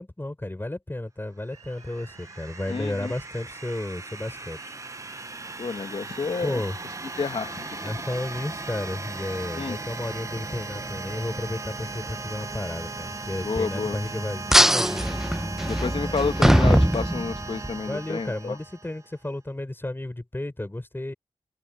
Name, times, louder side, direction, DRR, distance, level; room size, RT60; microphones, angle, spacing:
voice 1, 0.0-4.8 6.4-6.8 7.8-15.2 16.1-16.4 17.8-21.1, left 1 dB, 20° left, 5.1 m, -33 dB
sound 1, 1.5-19.1, right 3 dB, 30° right, 1.0 m, -37 dB
sound 2, 1.5-17.9, right 6 dB, 80° right, 3.7 m, -53 dB
voice 2, 2.7-3.1 5.6-6.6 7.2-7.9 9.6-9.8 13.4-14.0 15.7-18.6, left 4 dB, 55° left, 1.8 m, -30 dB
sound 3, 14.5-17.7, equal, 5° right, 0.9 m, -21 dB
open air
cardioid pair, 50°, 11 cm